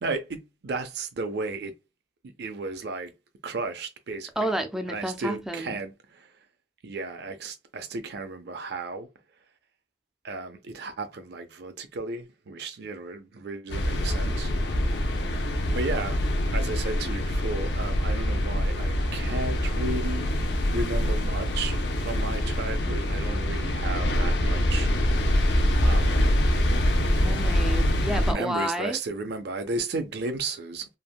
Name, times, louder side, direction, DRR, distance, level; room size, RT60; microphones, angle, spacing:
voice 1, 0.0-1.8 2.2-3.1 3.4-4.5 4.9-6.3 6.8-9.1 10.2-14.5 14.9-15.0 15.7-16.2 16.5-20.4 20.7-24.9 25.8-26.3 28.2-31.0, right 3 dB, 70° right, 0.5 m, -34 dB
voice 2, 4.4-5.8 27.2-29.0, right 1 dB, 5° right, 0.3 m, -30 dB
sound 1, 13.7-28.3, equal, 75° left, 0.6 m, -25 dB
3.3 x 2.1 x 2.3 m
head